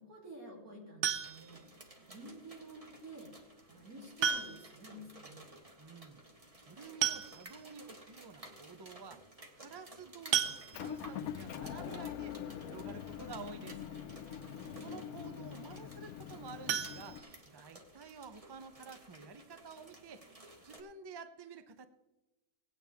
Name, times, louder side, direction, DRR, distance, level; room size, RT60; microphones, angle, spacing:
voice 1, 0.0-1.6 2.1-5.5 14.3-15.0, right 1 dB, 85° right, -3 dB, 3.7 m, -51 dB
sound 1, 1.0-1.7 3.1-3.2 4.2-4.8 5.1-5.2 5.5-5.6 6.6-6.7 7.0-7.7 8.3-8.4 8.7-8.9 10.3-11.2 16.6-17.8 18.2-18.3 18.7-18.8 19.2-19.3, right 8 dB, 60° right, 0.9 m, -34 dB
sound 2, 1.2-20.8, right 1 dB, 25° right, 1.2 m, -56 dB
voice 2, 5.8-6.2 6.6-9.3 9.6-13.8 14.8-20.3 20.6-21.9, right 5 dB, 40° right, 10 dB, 0.3 m, -50 dB
Motor vehicle (road) / Engine, 10.7-17.2, left 9 dB, 85° left, 1.1 m, -44 dB
17.5 x 9.2 x 3.5 m, 1.1 s
omnidirectional pair, 1.5 m